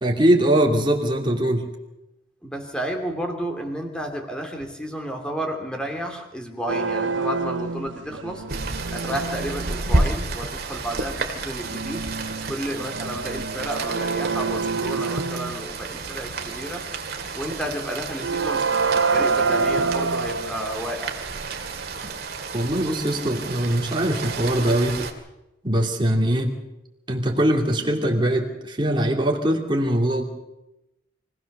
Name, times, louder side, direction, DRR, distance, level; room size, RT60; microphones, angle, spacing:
voice 1, 0.0-1.7 22.5-25.0 25.6-26.6 27.1-30.2, right 1 dB, 25° right, 0 dB, 2.7 m, -22 dB
voice 2, 2.4-12.0 12.5-16.8 17.3-21.2, equal, 5° left, 3 dB, 2.8 m, -32 dB
sound 1, 6.7-10.1 10.6-10.9 11.4-16.9 17.4-17.7 18.2-22.1, right 4 dB, 80° right, 0.8 m, -27 dB
Rain, 8.5-25.1, right 3 dB, 55° right, 2.3 m, -31 dB
24.5 x 16.5 x 6.7 m, 0.95 s
head